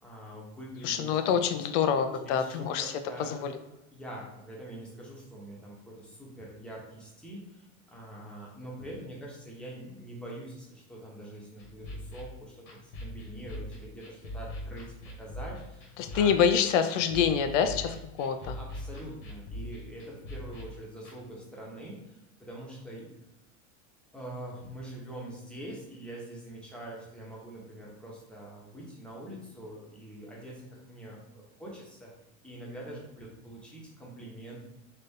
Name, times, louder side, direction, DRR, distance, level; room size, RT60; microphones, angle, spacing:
voice 1, 0.0-1.1 2.2-3.4 3.9-16.3 18.4-23.1 24.1-32.1 32.4-34.6, right 1 dB, 5° left, -4 dB, 0.9 m, -44 dB
voice 2, 0.8-2.9 3.2-3.5 16.0-18.6, left 7 dB, 85° left, 8 dB, 0.5 m, -26 dB
sound 1, 11.6-21.2, left 1 dB, 65° left, 1.3 m, -42 dB
4.2 x 2.6 x 3.6 m, 0.90 s
supercardioid pair, 135°, 36 cm